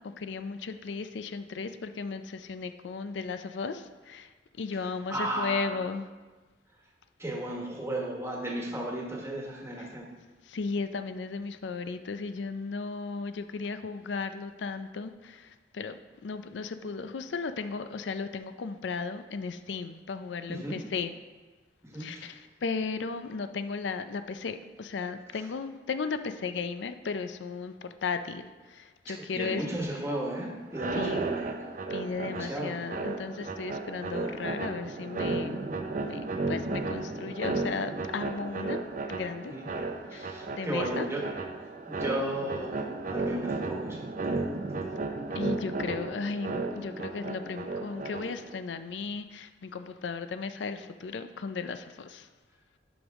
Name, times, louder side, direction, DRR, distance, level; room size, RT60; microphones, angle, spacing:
voice 1, 0.0-4.3 4.6-6.1 9.8-9.9 10.5-21.1 22.0-29.6 30.9-31.2 31.9-35.6 36.0-38.8 39.1-39.5 40.1-41.1 45.3-52.3, left 4 dB, 90° left, 10 dB, 0.5 m, -35 dB
voice 2, 5.1-5.8 7.2-10.1 20.5-20.8 21.8-22.3 25.3-25.5 29.1-31.5 32.2-32.8 39.5-39.7 40.1-41.2 41.9-44.1, right 1 dB, 15° right, -1 dB, 1.3 m, -35 dB
sound 1, 30.7-48.6, right 3 dB, 45° right, 0.6 m, -34 dB
11.0 x 5.3 x 3.6 m, 1.3 s
head